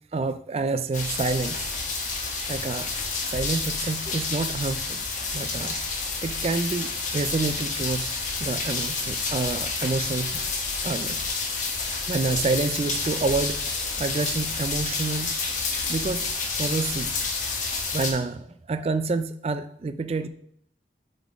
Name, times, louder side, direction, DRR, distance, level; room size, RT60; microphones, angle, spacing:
voice 1, 0.1-1.6 2.0-2.1 2.5-2.9 3.3-5.0 5.3-5.8 6.2-10.4 10.8-11.2 12.1-16.3 16.6-17.2 17.9-20.3, right 3 dB, 35° right, 12 dB, 0.3 m, -28 dB
sound 1, 0.9-18.1, left 4 dB, 45° left, 1.0 m, -29 dB
8.7 x 3.7 x 3.5 m, 0.68 s
head